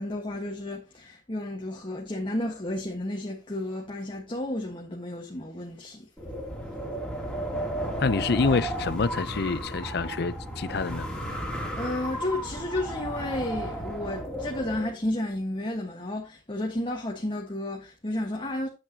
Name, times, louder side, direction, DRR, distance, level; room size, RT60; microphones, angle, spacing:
voice 1, 0.0-6.1 11.7-18.7, left 1 dB, 30° left, 1.4 m, -32 dB
Wind, 6.2-14.9, right 1 dB, 5° left, 2.9 m, -34 dB
voice 2, 8.0-11.1, left 4 dB, 65° left, 0.6 m, -27 dB
9.5 x 7.9 x 2.8 m
head